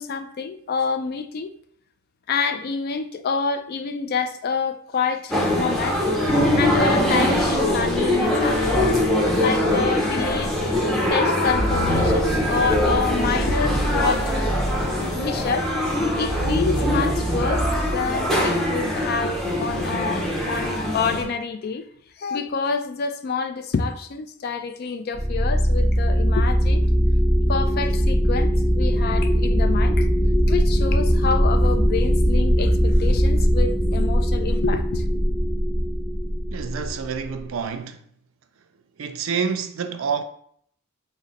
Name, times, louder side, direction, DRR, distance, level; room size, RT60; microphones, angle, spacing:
voice 1, 0.0-1.5 2.3-6.0 6.6-10.6 11.1-14.5 15.2-15.7 16.1-17.7 17.9-21.8 22.2-26.9 27.5-30.1 30.5-35.0, left 5 dB, 45° left, 0.3 m, -27 dB
sound 1, 5.3-21.2, left 1 dB, ahead, 0.6 m, -23 dB
sound 2, 6.2-18.8, equal, 80° left, 1.1 m, -29 dB
sound 3, 25.1-37.4, equal, 25° left, 1.1 m, -20 dB
voice 2, 36.5-38.0 39.0-40.2, right 6 dB, 70° right, 0.4 m, -28 dB
3.7 x 2.1 x 3.9 m
head